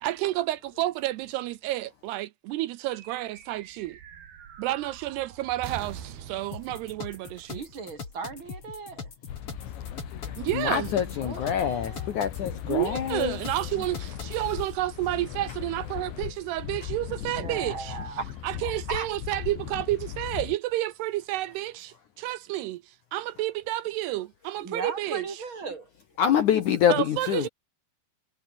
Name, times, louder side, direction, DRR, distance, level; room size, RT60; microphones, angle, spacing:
voice 1, 0.0-4.0 4.6-7.6 10.4-10.9 12.7-18.0 18.4-25.4 26.9-27.5, right 16 dB, 80° right, 2.7 m, -30 dB
sound 1, 2.9-8.6, right 8 dB, 65° right, 4.9 m, -45 dB
sound 2, 6.5-14.4, left 4 dB, 30° left, 4.4 m, -41 dB
voice 2, 7.5-9.1 11.2-12.2 17.2-18.4 18.9-19.1 24.6-25.9, right 4 dB, 35° right, 2.8 m, -37 dB
sound 3, 9.3-20.6, left 10 dB, 90° left, 4.7 m, -38 dB
voice 3, 10.3-13.4 26.2-27.5, left 9 dB, 65° left, 2.1 m, -26 dB
omnidirectional pair, 5.0 m